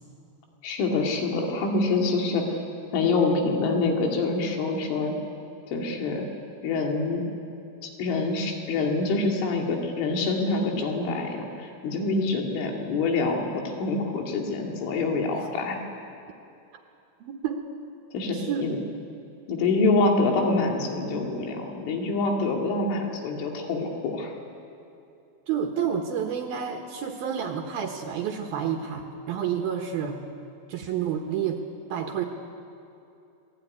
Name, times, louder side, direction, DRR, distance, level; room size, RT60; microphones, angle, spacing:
voice 1, 0.6-2.6 2.9-5.1 5.7-6.2 6.6-7.2 7.8-15.8 18.1-18.8 19.5-24.3, left 3 dB, 80° left, 1 dB, 4.9 m, -26 dB
voice 2, 17.2-17.6 18.3-18.6 25.5-30.2 30.7-31.6 31.9-32.2, right 8 dB, 70° right, 3 dB, 2.6 m, -29 dB
25.0 x 18.5 x 9.7 m, 2.7 s
omnidirectional pair, 5.5 m